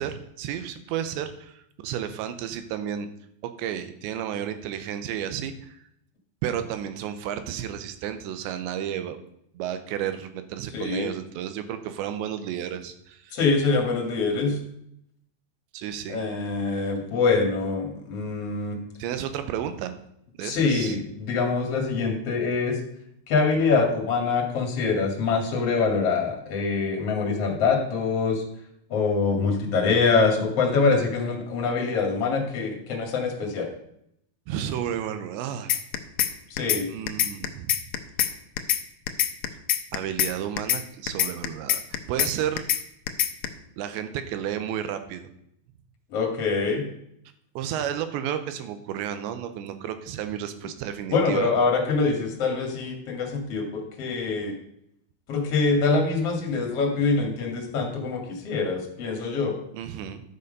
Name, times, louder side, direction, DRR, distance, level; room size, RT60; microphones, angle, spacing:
voice 1, 0.0-3.1 3.6-5.8 6.4-9.2 9.5-13.4 15.7-16.2 19.0-19.9 20.4-21.0 34.5-35.7 36.9-37.8 39.9-41.8 42.1-42.7 43.8-45.3 47.6-51.5 59.7-60.2, right 10 dB, 85° right, 10 dB, 3.1 m, -32 dB
voice 2, 10.7-11.1 13.3-14.6 16.1-18.8 20.4-22.8 23.3-28.4 28.9-33.7 36.5-36.9 46.1-46.9 51.1-54.5 55.3-59.6, left 4 dB, 45° left, 1 dB, 2.5 m, -24 dB
sound 1, 35.7-36.3 36.6-36.8 37.1-38.3 38.6-38.8 39.1-40.3 40.6-40.8 41.1-42.3 42.6-42.8 43.1-43.5, left 12 dB, 85° left, 2.1 m, -23 dB
12.0 x 6.8 x 5.3 m, 0.74 s
omnidirectional pair, 5.0 m